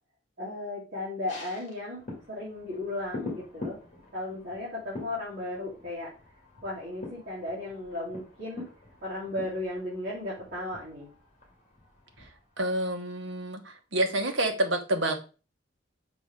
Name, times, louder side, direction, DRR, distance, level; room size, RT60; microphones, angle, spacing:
voice 1, 0.4-3.8 4.1-6.1 6.6-8.7 9.0-11.1, left 2 dB, 55° right, -10 dB, 2.9 m, -35 dB
sound 1, 1.3-13.0 13.3-13.4, left 2 dB, 40° left, 2.2 m, -45 dB
voice 2, 12.6-15.2, right 1 dB, 80° right, 4 dB, 1.2 m, -28 dB
6.1 x 4.9 x 3.6 m, 0.34 s
head